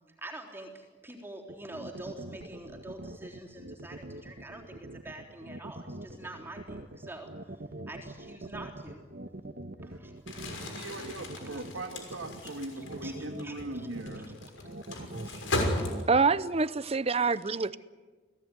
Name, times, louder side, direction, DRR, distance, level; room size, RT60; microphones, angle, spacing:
voice 1, 0.2-7.3 7.9-9.0 9.8-10.1 12.1-13.9 14.1-14.3 15.2-15.5, right 2 dB, 10° right, 3.6 m, -46 dB
sound 1, 1.5-16.2, right 1 dB, 50° right, 1.4 m, -43 dB
Crumpling crinkling, 10.2-16.4, left 1 dB, 80° left, 6.1 m, -36 dB
voice 2, 10.6-14.3, right 2 dB, 85° right, 2.3 m, -40 dB
voice 3, 16.1-17.8, right 4 dB, 30° right, 0.7 m, -26 dB
29.0 x 18.5 x 9.7 m
head